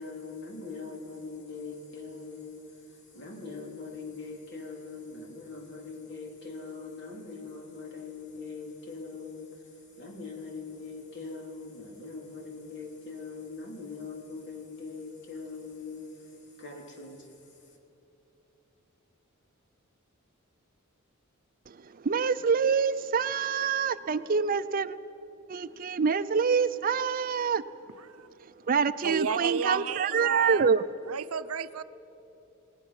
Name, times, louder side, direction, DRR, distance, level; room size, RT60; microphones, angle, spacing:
voice 1, 0.0-17.8, left 4 dB, 55° left, 0 dB, 3.5 m, -42 dB
voice 2, 21.7-25.0 25.5-27.6 28.7-30.8, right 6 dB, 40° right, 13 dB, 0.5 m, -26 dB
voice 3, 28.0-28.3 29.0-30.7 31.1-31.8, right 6 dB, 90° right, 13 dB, 0.6 m, -32 dB
28.5 x 19.0 x 6.0 m, 3.0 s
head